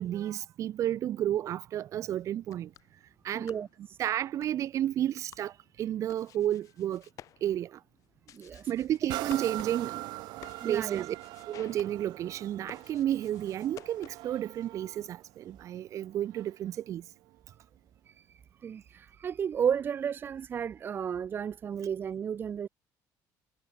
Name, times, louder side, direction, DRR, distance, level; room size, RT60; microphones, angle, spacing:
voice 1, 0.0-2.7 3.2-3.5 4.0-5.5 5.8-7.0 7.4-7.8 8.7-10.0 10.6-11.2 11.5-17.0, right 11 dB, 45° right, 1.7 m, -31 dB
Snap Clap Rumble, 2.3-14.4, left 12 dB, 50° left, 3.3 m, -55 dB
voice 2, 3.3-4.0 8.3-8.7 10.6-11.0 18.1-18.3 18.6-22.7, right 8 dB, 30° right, 0.9 m, -33 dB
sound 1, 9.1-16.7 17.3-17.4, right 19 dB, 75° right, 1.8 m, -42 dB
cardioid pair, 170°, 7 cm